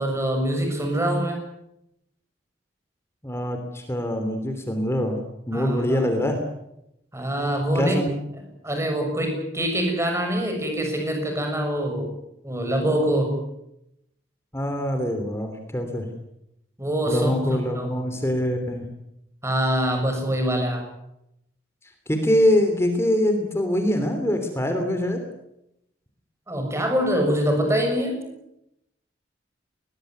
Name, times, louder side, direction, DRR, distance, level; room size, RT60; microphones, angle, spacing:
voice 1, 0.0-1.4 5.5-6.1 7.1-8.0 8.6-12.1 12.4-13.4 16.8-18.1 19.4-20.9 26.5-28.2, equal, 15° right, 3 dB, 6.7 m, -24 dB
voice 2, 3.2-5.2 5.5-6.4 7.7-8.1 14.5-16.1 17.1-18.9 22.1-25.2, left 1 dB, 15° left, 5 dB, 3.2 m, -24 dB
21.0 x 21.0 x 9.6 m, 0.84 s
head